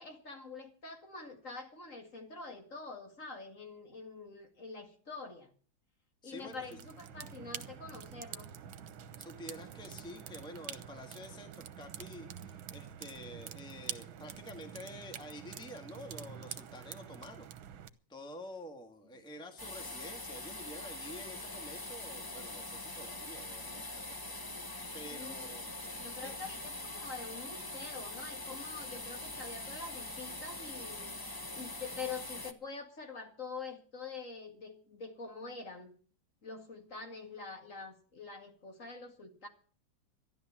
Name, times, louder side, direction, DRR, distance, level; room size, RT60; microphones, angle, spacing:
voice 1, 0.0-5.5 6.2-8.5 25.1-25.5 25.8-31.1 31.5-35.9 36.4-39.5, left 4 dB, 40° left, 4 dB, 2.5 m, -46 dB
voice 2, 6.2-6.8 9.2-17.5 18.1-23.9 24.5-25.7 26.2-26.5, left 1 dB, ahead, 5 dB, 1.6 m, -49 dB
sound 1, 6.4-17.9, right 9 dB, 85° right, 1.8 m, -47 dB
sound 2, 19.6-32.5, left 2 dB, 20° left, 0.7 m, -43 dB
13.5 x 11.0 x 7.3 m, 0.43 s
omnidirectional pair, 2.1 m